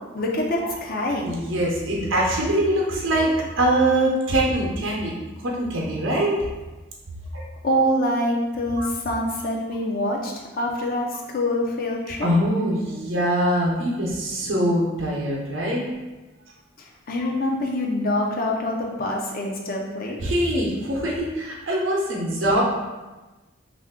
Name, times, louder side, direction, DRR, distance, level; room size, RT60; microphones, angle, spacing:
voice 1, 0.1-1.3 7.6-12.3 14.4-14.5 16.8-20.2, left 1 dB, 45° left, 0 dB, 0.4 m, -25 dB
voice 2, 1.2-5.1 5.4-6.5 7.3-7.4 8.8-8.9 12.2-15.9 20.2-22.6, right 1 dB, 70° right, -3 dB, 0.7 m, -23 dB
3.2 x 2.5 x 3.5 m, 1.2 s
head